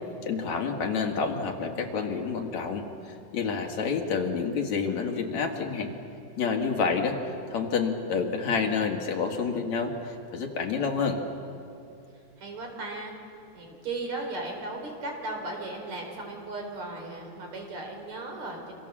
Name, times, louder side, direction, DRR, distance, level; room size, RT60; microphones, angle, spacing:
voice 1, 0.2-5.9 6.4-11.2, left 5 dB, 70° left, 3 dB, 3.3 m, -29 dB
voice 2, 12.4-13.1 13.5-18.7, right 2 dB, 65° right, 2 dB, 5.5 m, -36 dB
28.5 x 25.5 x 7.5 m, 2.7 s
omnidirectional pair, 3.3 m